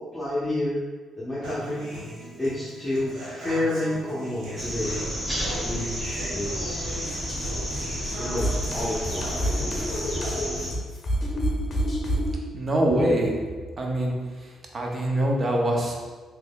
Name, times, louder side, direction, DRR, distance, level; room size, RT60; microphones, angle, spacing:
voice 1, 0.1-0.8 1.2-2.0 2.4-5.0 5.5-6.8 8.2-9.3, left 1 dB, 10° left, -10 dB, 0.8 m, -29 dB
Human voice / Acoustic guitar, 1.4-9.4, equal, 90° right, 0.9 m, -39 dB
sound 1, 4.6-10.7, equal, 15° right, 0.9 m, -31 dB
sound 2, 7.0-12.4, equal, 45° left, 0.6 m, -29 dB
voice 2, 12.5-13.3 13.8-14.1 14.7-16.0, right 1 dB, 40° right, 0 dB, 0.7 m, -23 dB
3.6 x 3.0 x 2.4 m, 1.4 s
cardioid pair, 90°, 0 cm